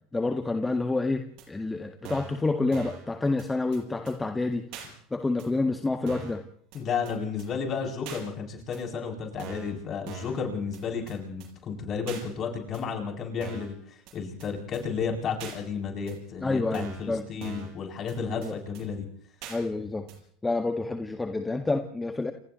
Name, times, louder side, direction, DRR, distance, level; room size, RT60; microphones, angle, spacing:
voice 1, 0.1-4.6 5.1-6.4 16.4-17.2 18.3-18.6 19.5-20.1 20.4-22.3, left 3 dB, 15° left, 5 dB, 1.8 m, -28 dB
sound 1, 1.4-1.5 2.0-2.4 2.7-3.0 3.4-3.5 3.7-3.8 4.1-4.2 4.7-4.9 5.4-5.5 6.1-6.4 6.7-6.8 7.1-7.2 7.4-7.5 8.0-8.2 8.7-8.8 9.4-9.7 10.1-10.4 10.7-10.8 11.1-11.2 11.4-11.5 12.1-12.2 12.7-12.8 13.4-13.7 14.1-14.2 14.4-14.5 14.7-14.8 15.4-15.6 16.1-16.2 16.7-17.1 17.4-17.7 18.1-18.2 18.4-18.5 18.7-18.8 19.4-19.6 20.1-20.2, right 6 dB, 60° right, 7.0 m, -41 dB
voice 2, 6.7-19.1, left 6 dB, 40° left, 0 dB, 7.8 m, -32 dB
29.5 x 28.5 x 3.2 m, 0.63 s
hypercardioid pair, 80°, 0 cm